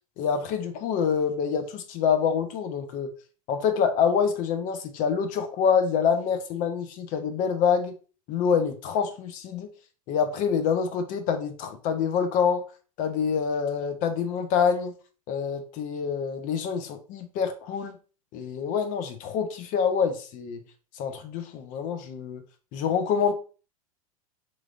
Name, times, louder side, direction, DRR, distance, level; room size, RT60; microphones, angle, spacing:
voice 1, 0.2-3.1 3.5-7.9 8.3-9.7 10.1-12.6 13.0-14.9 15.3-17.9 18.3-20.6 21.0-22.4 22.7-23.3, left 6 dB, 45° left, 0.7 m, -26 dB
3.8 x 3.1 x 2.5 m
hypercardioid pair, 90°, 19 cm